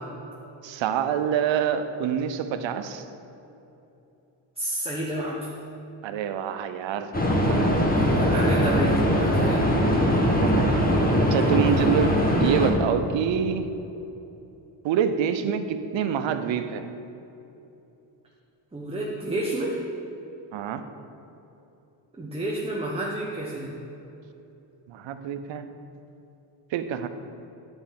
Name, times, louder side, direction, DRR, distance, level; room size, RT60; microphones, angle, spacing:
voice 1, 0.6-3.1 6.0-7.1 7.5-7.8 10.4-10.7 11.2-13.7 14.8-16.9 20.5-20.8 24.9-25.7 26.7-27.1, right 8 dB, 80° right, 9 dB, 0.8 m, -26 dB
voice 2, 4.6-5.5 7.6-9.7 11.2-11.8 18.7-19.8 22.2-23.8, right 1 dB, 15° right, -3 dB, 1.2 m, -30 dB
sound 1, 7.1-12.7, equal, 20° left, 1.6 m, -21 dB
9.9 x 5.3 x 7.2 m, 2.9 s
cardioid pair, 95°, 45 cm